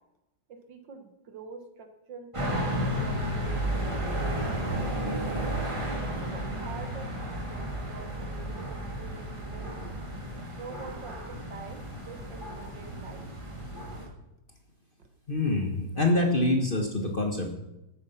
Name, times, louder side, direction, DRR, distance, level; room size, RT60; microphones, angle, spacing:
voice 1, 0.5-4.4 5.3-10.0 10.5-13.3, right 5 dB, 65° right, 7 dB, 2.1 m, -46 dB
sound 1, 2.3-14.1, right 1 dB, 15° right, 2.4 m, -33 dB
voice 2, 15.3-17.5, left 2 dB, 30° left, 2 dB, 1.3 m, -26 dB
13.0 x 9.7 x 5.8 m, 0.89 s
omnidirectional pair, 2.1 m